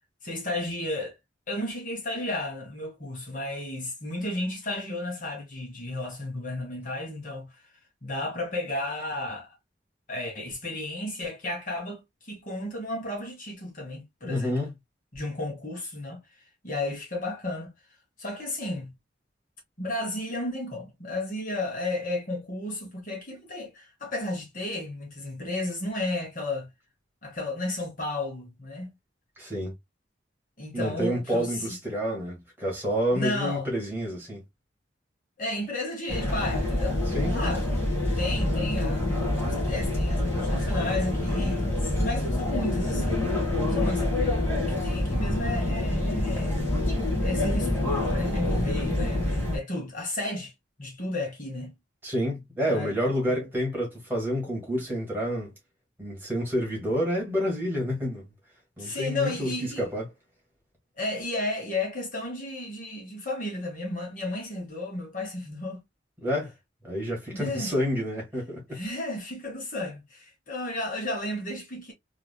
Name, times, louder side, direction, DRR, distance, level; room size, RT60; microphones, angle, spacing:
voice 1, 0.2-1.2 1.5-7.5 8.0-9.5 10.1-14.6 15.1-16.2 16.6-17.7 18.2-18.9 19.8-26.7 27.2-28.9 30.6-31.8 33.1-33.7 35.4-37.0 37.3-37.7 38.2-43.2 43.7-46.6 47.2-50.5 50.8-51.7 52.7-52.9 53.2-53.4 58.8-59.9 61.0-65.8 67.3-67.7 68.7-71.9, left 2 dB, 45° left, 1.7 m, -33 dB
voice 2, 14.2-14.7 29.4-29.7 30.7-34.4 37.1-37.4 52.0-55.5 56.0-58.2 58.8-60.1 66.2-66.5 66.8-68.8, equal, 10° right, 1.9 m, -29 dB
sound 1, 36.1-49.6, left 1 dB, 10° left, 1.9 m, -26 dB
3.7 x 3.2 x 2.2 m
head